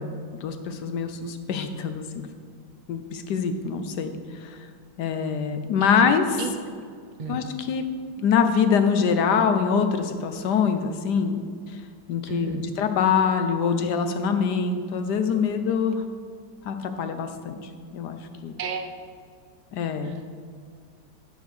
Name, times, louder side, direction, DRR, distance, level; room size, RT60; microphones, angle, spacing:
voice 1, 0.0-2.2 2.9-4.6 5.0-6.4 7.3-7.8 8.2-11.4 12.1-16.0 16.6-17.6 17.9-18.5 19.7-20.1, left 6 dB, 70° left, 7 dB, 1.2 m, -24 dB
voice 2, 12.3-12.6 18.6-18.9 20.0-20.2, right 5 dB, 55° right, 5 dB, 0.5 m, -32 dB
11.0 x 5.1 x 6.5 m, 2.1 s
omnidirectional pair, 2.0 m